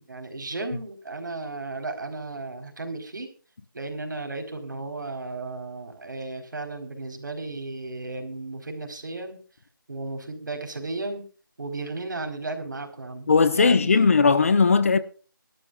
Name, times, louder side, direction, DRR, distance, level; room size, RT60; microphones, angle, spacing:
voice 1, 0.0-3.3 3.7-9.4 9.9-11.2 11.6-14.1, right 3 dB, 60° right, 4.4 m, -34 dB
voice 2, 13.3-15.0, left 4 dB, 40° left, 1.1 m, -18 dB
22.5 x 12.5 x 2.4 m
figure-of-eight pair, 170°, 11 cm